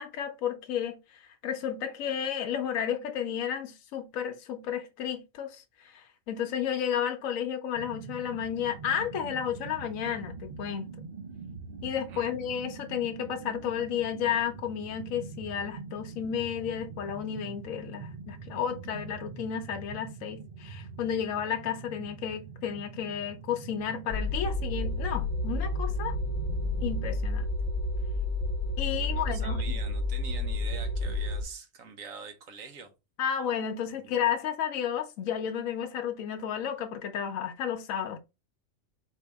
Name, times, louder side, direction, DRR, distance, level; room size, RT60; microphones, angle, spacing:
voice 1, 0.0-10.9 11.8-26.2 26.8-27.4 28.8-29.6 33.2-38.2, left 8 dB, 80° left, 1.0 m, -32 dB
sound 1, 7.7-27.2, right 5 dB, 55° right, 0.6 m, -44 dB
sound 2, 24.1-31.4, left 1 dB, 55° left, 0.9 m, -30 dB
voice 2, 28.8-32.9 34.0-34.2, right 5 dB, 80° right, 1.3 m, -44 dB
4.5 x 2.7 x 3.4 m
omnidirectional pair, 1.4 m